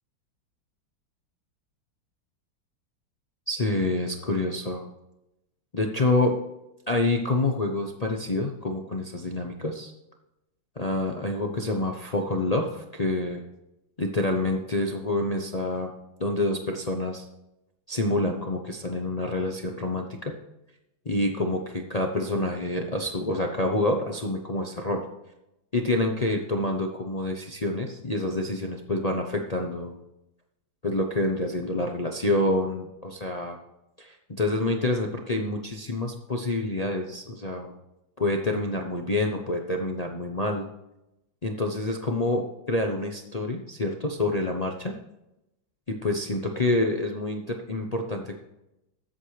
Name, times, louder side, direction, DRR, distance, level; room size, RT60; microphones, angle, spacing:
voice 1, 3.5-4.8 5.7-6.4 6.9-9.9 10.8-13.4 14.0-15.9 16.2-17.3 17.9-20.3 21.1-25.0 25.7-30.0 30.8-33.6 34.0-37.7 38.2-40.7 41.4-44.9 46.0-48.4, left 2 dB, 75° left, 2 dB, 0.3 m, -27 dB
20.5 x 8.1 x 3.3 m, 0.90 s
omnidirectional pair, 2.2 m